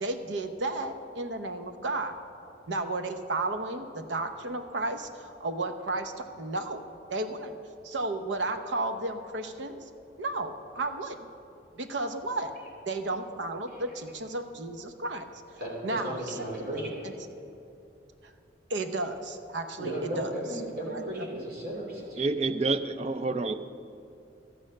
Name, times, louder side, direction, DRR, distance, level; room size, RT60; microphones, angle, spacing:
voice 1, 0.0-2.1 2.7-6.8 7.1-7.5 7.8-9.8 10.2-11.3 11.8-12.5 12.9-15.3 15.8-16.9 18.2-18.3 18.7-20.3 20.9-21.0, right 2 dB, 80° right, 8 dB, 0.8 m, -33 dB
voice 2, 15.6-17.1 19.8-22.2, right 1 dB, 55° right, -3 dB, 3.1 m, -35 dB
voice 3, 22.2-23.5, right 3 dB, 35° right, 11 dB, 0.4 m, -28 dB
12.5 x 8.7 x 6.4 m, 2.7 s
head